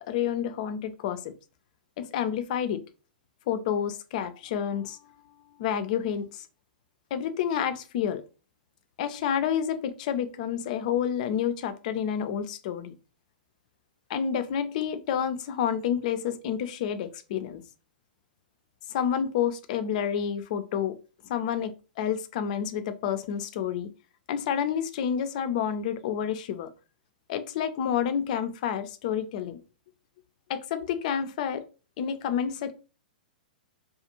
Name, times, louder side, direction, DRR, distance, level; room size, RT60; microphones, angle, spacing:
voice 1, 0.0-1.3 2.0-2.8 3.5-5.0 5.6-6.5 7.1-8.2 9.0-12.9 14.1-17.6 18.9-21.0 21.3-23.9 24.3-26.7 27.3-29.6 30.5-31.6 32.0-32.7, left 8 dB, 55° left, 0.4 m, -29 dB
2.4 x 2.3 x 2.9 m
hypercardioid pair, 120°, 5 cm